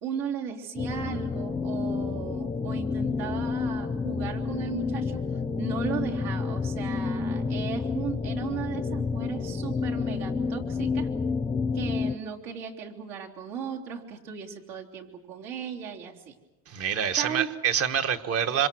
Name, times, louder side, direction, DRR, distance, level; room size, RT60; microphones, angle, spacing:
voice 1, 0.0-5.2 5.6-11.1 11.7-16.3 17.2-17.6, right 7 dB, 70° right, 0 dB, 3.6 m, -36 dB
sound 1, 0.8-12.1, left 4 dB, 15° left, 0.7 m, -29 dB
voice 2, 16.7-18.7, right 8 dB, 40° right, 9 dB, 1.5 m, -26 dB
26.5 x 26.5 x 6.3 m, 1.1 s
cardioid pair, 140°, 36 cm